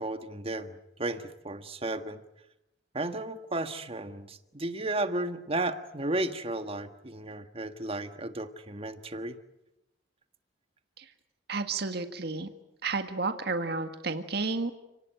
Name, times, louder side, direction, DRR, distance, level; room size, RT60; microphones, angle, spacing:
voice 1, 0.0-2.2 2.9-9.4, right 2 dB, 30° right, 9 dB, 1.6 m, -34 dB
voice 2, 11.5-12.5 12.8-14.8, right 3 dB, 60° right, 8 dB, 1.7 m, -31 dB
29.5 x 19.0 x 9.2 m, 0.90 s
head